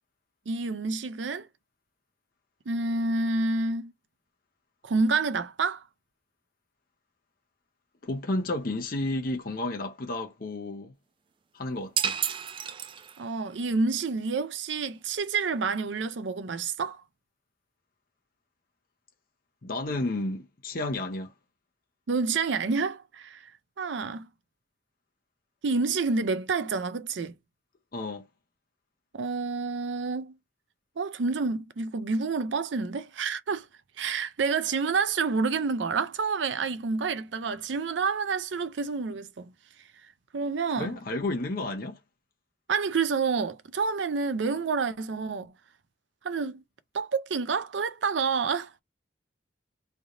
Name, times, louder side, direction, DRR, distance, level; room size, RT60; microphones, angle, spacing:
voice 1, 0.5-1.5 2.7-3.9 4.8-5.8 13.2-17.0 22.1-23.5 23.8-24.3 25.6-27.4 29.1-30.4 31.0-33.7 34.0-39.5 40.3-41.0 42.7-45.5 46.2-46.6 46.9-48.8, right 4 dB, 85° right, 0.5 m, -28 dB
voice 2, 8.0-10.9 11.5-12.2 19.6-21.3 27.9-28.3 40.8-42.0, left 2 dB, 50° left, 0.7 m, -32 dB
sound 1, 12.0-13.4, right 8 dB, 30° right, 0.3 m, -31 dB
3.3 x 2.7 x 3.7 m
head